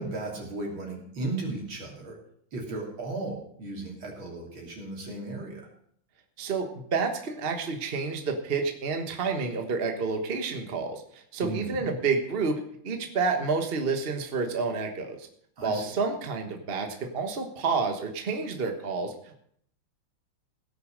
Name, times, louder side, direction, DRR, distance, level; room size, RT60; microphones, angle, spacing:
voice 1, 0.0-2.2 2.5-5.7 11.4-11.9 15.6-15.9, right 2 dB, 75° right, 0 dB, 3.8 m, -35 dB
voice 2, 6.4-15.2 15.6-19.1, right 4 dB, 35° right, 4 dB, 1.3 m, -29 dB
16.5 x 6.7 x 6.5 m, 0.65 s
omnidirectional pair, 2.2 m